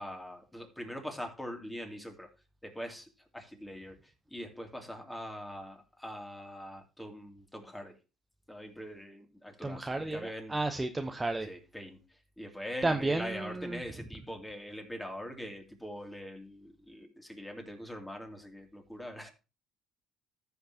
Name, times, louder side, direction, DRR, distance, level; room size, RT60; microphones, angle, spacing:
voice 1, 0.0-2.3 2.6-8.0 8.5-10.6 11.4-19.3, equal, 10° left, 2.7 m, -43 dB
voice 2, 9.6-11.5 12.8-13.8, right 2 dB, 15° right, 0.8 m, -32 dB
14.0 x 5.8 x 2.8 m
supercardioid pair, 80°, 0 cm